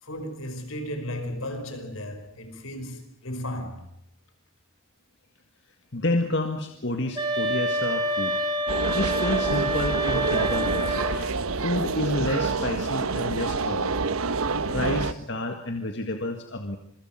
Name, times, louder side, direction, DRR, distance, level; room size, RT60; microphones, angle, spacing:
voice 1, 0.0-3.9, left 1 dB, 80° left, 5.2 m, -35 dB
voice 2, 5.9-8.4 8.7-14.0 14.7-16.8, left 2 dB, 55° left, 2.0 m, -30 dB
sound 1, 7.2-11.3, equal, 20° right, 3.0 m, -27 dB
sound 2, 8.7-15.1, right 4 dB, 85° right, 1.1 m, -27 dB
26.5 x 24.0 x 5.9 m
head